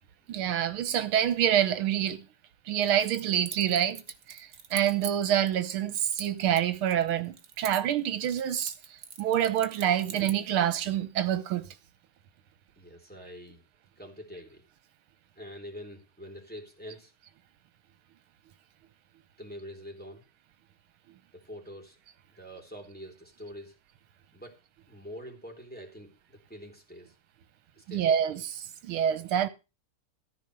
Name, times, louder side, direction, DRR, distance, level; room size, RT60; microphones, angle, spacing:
voice 1, 0.3-2.2 2.7-4.0 4.3-8.7 9.2-11.6 27.9-29.5, right 10 dB, 80° right, 1.7 m, -27 dB
Keys jangling, 2.8-5.5 5.9-8.0 8.2-10.5, right 6 dB, 45° right, 1.4 m, -42 dB
voice 2, 12.8-13.6 14.0-14.6 15.4-17.1 19.4-20.2 21.3-22.0 22.3-23.8 24.3-27.1 27.8-28.3, equal, 5° left, 3.6 m, -45 dB
14.5 x 5.2 x 7.9 m
omnidirectional pair, 2.4 m